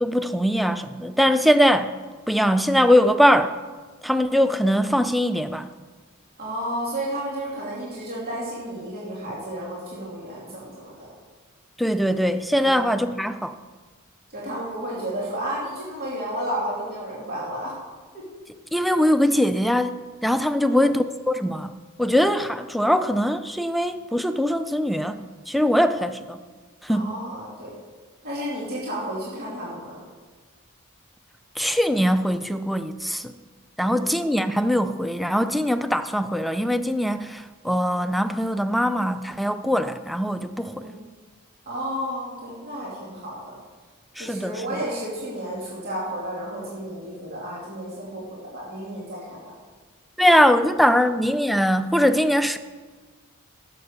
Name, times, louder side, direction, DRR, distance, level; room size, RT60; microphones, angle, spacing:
voice 1, 0.0-1.9 2.3-3.6 4.0-5.7 11.8-13.5 18.7-21.7 22.0-26.4 26.8-27.1 31.6-33.3 33.8-40.9 44.2-44.6 50.2-52.6, equal, ahead, 10 dB, 0.4 m, -21 dB
voice 2, 6.4-11.1 12.6-12.9 14.3-17.7 18.1-18.3 20.5-20.9 26.9-27.7 28.2-30.0 33.8-34.1 40.5-41.0 41.7-43.5 44.2-49.4, right 1 dB, 45° right, -6 dB, 2.7 m, -32 dB
11.5 x 7.6 x 6.7 m, 1.4 s
head